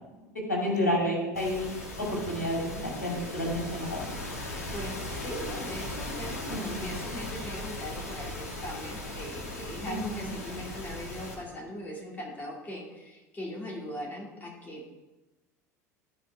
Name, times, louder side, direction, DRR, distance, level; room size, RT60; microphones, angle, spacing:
voice 1, 0.5-1.7 2.0-4.0 6.5-6.9 9.9-10.6, left 1 dB, 85° left, -2 dB, 2.5 m, -30 dB
sound 1, 1.3-11.3, left 1 dB, 70° left, 2.2 m, -38 dB
sound 2, 1.7-5.6, right 3 dB, 75° right, 2.6 m, -47 dB
voice 2, 4.7-14.8, equal, 20° left, -3 dB, 2.4 m, -40 dB
13.0 x 4.7 x 4.5 m, 1.1 s
figure-of-eight pair, 75°, 9 cm